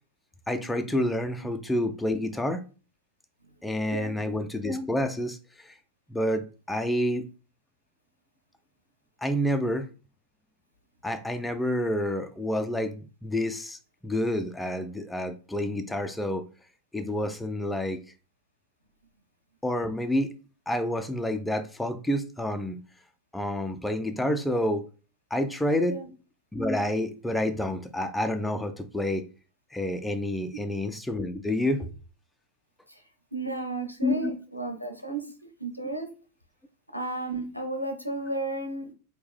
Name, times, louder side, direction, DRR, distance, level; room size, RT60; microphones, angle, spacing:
voice 1, 0.5-2.6 3.6-5.4 6.1-7.2 9.2-9.9 11.0-13.8 14.0-16.5 16.9-18.0 19.6-20.3 20.7-22.8 23.3-24.9 25.3-26.0 26.5-29.3 29.7-31.9 34.0-34.4, left 1 dB, 5° left, 0.4 m, -28 dB
voice 2, 33.3-36.1 36.9-38.9, right 2 dB, 90° left, 0.7 m, -33 dB
4.3 x 2.2 x 3.4 m
figure-of-eight pair, 90°, 0 cm